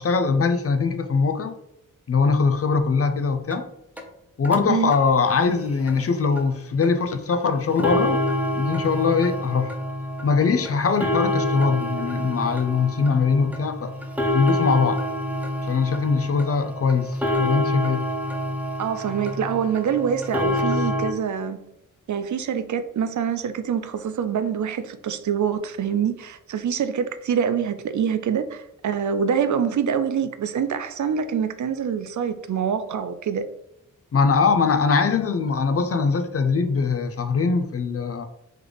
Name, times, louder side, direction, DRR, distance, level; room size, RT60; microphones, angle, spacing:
voice 1, 0.0-1.6 2.1-3.7 4.4-8.2 8.6-9.8 10.2-13.9 14.3-15.0 15.7-18.1 34.1-38.3, left 5 dB, 45° left, 0.5 m, -22 dB
sound 1, 3.5-3.6 4.0-4.1 4.4-4.6 4.9-5.0 5.4-5.5 5.9-6.0 6.4-6.5 6.8-6.9 7.3-7.4 7.7-21.1, left 1 dB, 5° right, 0.6 m, -27 dB
voice 2, 18.8-21.6 22.1-33.5, right 7 dB, 60° right, 0.4 m, -25 dB
3.2 x 3.2 x 3.9 m
wide cardioid pair, 80°, 33 cm